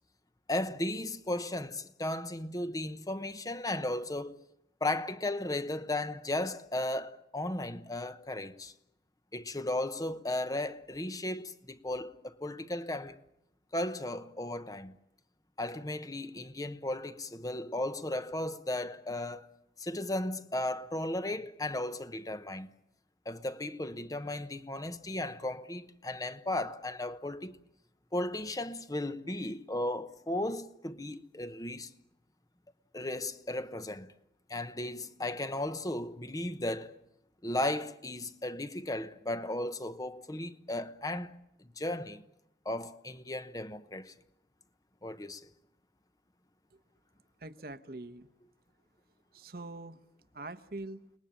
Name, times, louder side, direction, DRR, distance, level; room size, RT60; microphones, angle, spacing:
voice 1, 0.5-4.4 4.8-8.7 9.3-13.2 13.7-14.9 15.6-19.5 19.8-22.7 23.3-27.6 28.1-31.9 32.9-34.1 34.5-36.9 37.4-41.3 41.6-42.2 42.6-44.1 45.0-45.5, left 1 dB, 20° left, 0.9 m, -35 dB
voice 2, 47.4-48.3 49.3-50.0 50.3-51.0, right 2 dB, 55° right, 1.1 m, -43 dB
30.0 x 20.0 x 8.9 m
head